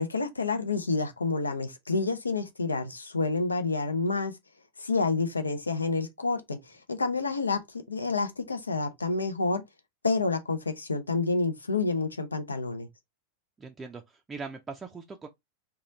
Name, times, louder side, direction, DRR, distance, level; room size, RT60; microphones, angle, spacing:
voice 1, 0.0-4.3 4.8-6.6 6.9-7.6 7.9-9.6 10.0-12.9, left 3 dB, 75° left, 0.6 m, -28 dB
voice 2, 13.6-15.3, right 4 dB, 15° right, 0.4 m, -41 dB
3.0 x 2.3 x 3.8 m
figure-of-eight pair, 90°, 0 cm